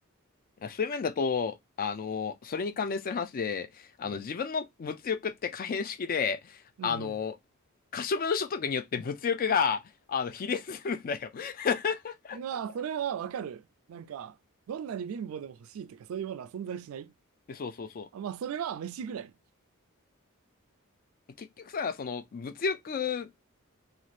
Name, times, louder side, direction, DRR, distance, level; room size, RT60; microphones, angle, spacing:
voice 1, 0.6-7.3 7.9-9.8 10.1-12.4 17.5-18.1 21.4-23.3, left 6 dB, 40° left, 0.4 m, -31 dB
voice 2, 6.8-7.2 12.3-14.4 14.7-17.1 18.1-19.3, right 8 dB, 70° right, 0.3 m, -37 dB
2.6 x 2.4 x 3.1 m
head